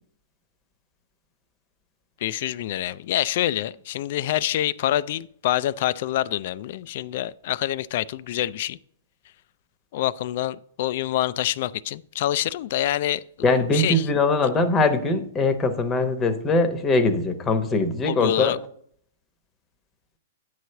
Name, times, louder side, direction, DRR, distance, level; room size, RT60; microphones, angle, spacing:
voice 1, 2.2-8.8 9.9-13.2 13.5-14.1 14.4-14.5 18.1-18.6, left 13 dB, 55° left, 0.3 m, -26 dB
voice 2, 13.4-18.5, left 3 dB, 20° left, 0.9 m, -22 dB
9.3 x 3.2 x 6.7 m
hypercardioid pair, 130°, 0 cm